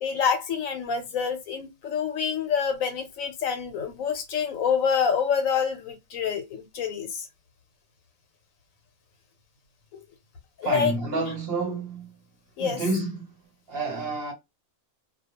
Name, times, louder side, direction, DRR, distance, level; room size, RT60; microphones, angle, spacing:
voice 1, 0.0-7.3 9.9-10.0 10.6-10.9 12.6-12.8, left 7 dB, 75° left, 1.1 m, -27 dB
voice 2, 10.6-12.1 12.6-13.3 13.7-14.3, right 2 dB, 55° right, 0.8 m, -29 dB
2.3 x 2.2 x 2.8 m
omnidirectional pair, 1.4 m